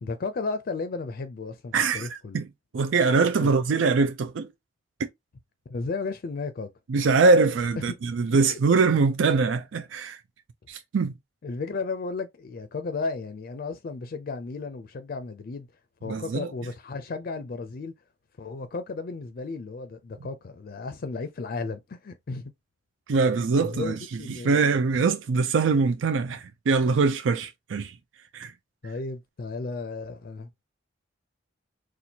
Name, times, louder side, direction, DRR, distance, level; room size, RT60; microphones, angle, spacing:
voice 1, 0.0-2.4 3.4-3.6 5.7-6.7 7.8-7.9 8.3-8.6 11.4-15.7 16.0-17.9 18.4-22.5 23.6-24.6 28.8-30.5, left 3 dB, 50° left, 0.4 m, -34 dB
voice 2, 1.7-2.4 2.7-4.5 6.9-10.2 10.7-11.1 16.1-16.5 23.1-28.0 28.3-28.5, right 4 dB, 85° right, 0.4 m, -23 dB
4.2 x 2.4 x 2.8 m
head